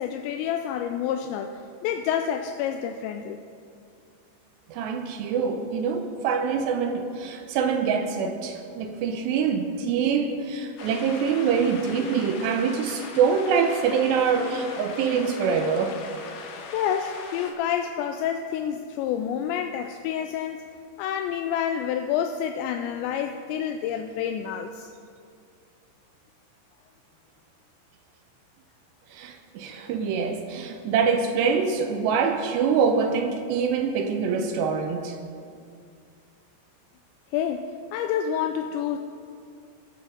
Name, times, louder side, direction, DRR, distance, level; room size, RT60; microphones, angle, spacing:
voice 1, 0.0-3.4 16.7-20.6 21.0-24.9 37.3-39.0, left 9 dB, 85° left, 6 dB, 2.7 m, -28 dB
voice 2, 4.7-16.0 29.1-35.2, right 6 dB, 80° right, 6 dB, 2.7 m, -25 dB
sound 1, 10.8-17.5, left 5 dB, 65° left, 2.6 m, -40 dB
20.0 x 7.6 x 5.1 m, 2.3 s
omnidirectional pair, 5.3 m